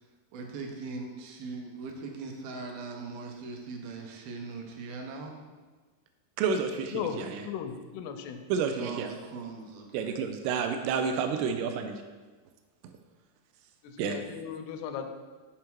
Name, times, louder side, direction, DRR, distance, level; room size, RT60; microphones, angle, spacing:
voice 1, 0.3-5.3 8.8-10.1, right 3 dB, 75° right, 2 dB, 2.4 m, -40 dB
voice 2, 6.4-7.5 8.5-9.1 9.9-12.0 14.0-14.2, right 6 dB, 90° right, 6 dB, 2.6 m, -30 dB
voice 3, 7.5-8.4 13.8-15.1, left 8 dB, 90° left, 7 dB, 2.7 m, -36 dB
7.1 x 4.9 x 4.5 m, 1.4 s
omnidirectional pair, 4.6 m